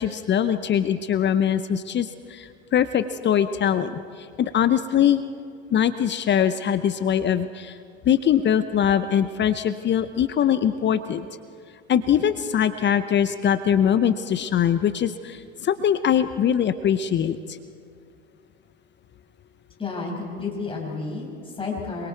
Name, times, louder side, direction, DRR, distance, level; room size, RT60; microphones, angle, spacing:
voice 1, 0.0-5.2 5.7-7.8 8.1-11.3 11.9-17.6, left 9 dB, 35° left, 12 dB, 0.8 m, -22 dB
voice 2, 19.8-22.1, left 4 dB, 15° left, -1 dB, 6.2 m, -31 dB
26.5 x 22.5 x 4.6 m, 2.2 s
hypercardioid pair, 75°, 32 cm